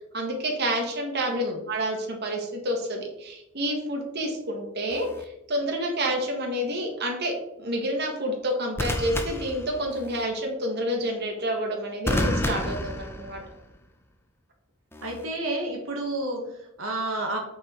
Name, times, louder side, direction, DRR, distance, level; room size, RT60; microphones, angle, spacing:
voice 1, 0.1-13.4, equal, 55° right, 1 dB, 1.7 m, -29 dB
voice 2, 1.3-1.6 15.0-17.4, right 1 dB, 75° right, 0 dB, 1.6 m, -30 dB
sound 1, 4.9-5.2 8.8-10.2 12.1-13.7 14.9-15.2, left 1 dB, 10° left, 0.8 m, -30 dB
8.6 x 4.7 x 4.5 m, 0.84 s
head